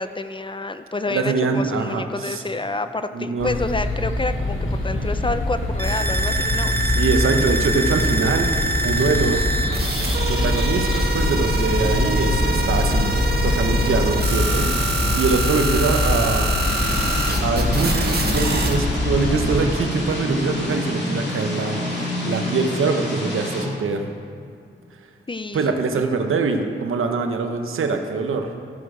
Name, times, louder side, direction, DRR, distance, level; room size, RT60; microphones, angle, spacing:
voice 1, 0.0-6.8 25.3-26.0, left 2 dB, 25° left, 10 dB, 0.6 m, -28 dB
voice 2, 1.1-2.4 3.1-3.5 6.8-8.5 8.8-9.5 10.3-13.2 13.4-14.7 15.1-16.5 17.4-24.1 25.5-28.5, right 4 dB, 80° right, 5 dB, 0.9 m, -23 dB
sound 1, 3.4-19.7, left 2 dB, 70° left, 2.1 m, -24 dB
sound 2, 5.8-18.7, right 2 dB, 50° right, 1.6 m, -24 dB
sound 3, 16.6-23.6, left 1 dB, 55° left, 2.7 m, -28 dB
14.0 x 6.3 x 5.0 m, 2.5 s
cardioid pair, 50°, 21 cm